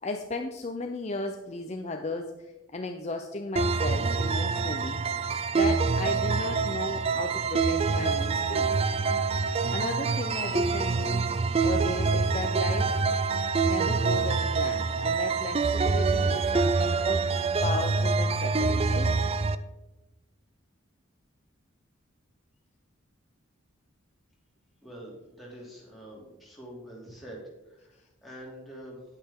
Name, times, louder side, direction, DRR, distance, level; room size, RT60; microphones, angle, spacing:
voice 1, 0.0-5.0 5.5-8.9 9.7-11.3 11.6-13.0 13.6-17.2 17.6-19.2, left 2 dB, 30° left, 4 dB, 0.6 m, -35 dB
sound 1, 3.6-19.6, right 4 dB, 30° right, 0.3 m, -26 dB
voice 2, 24.8-29.0, equal, ahead, -4 dB, 2.7 m, -45 dB
10.0 x 8.4 x 3.7 m, 1.0 s
head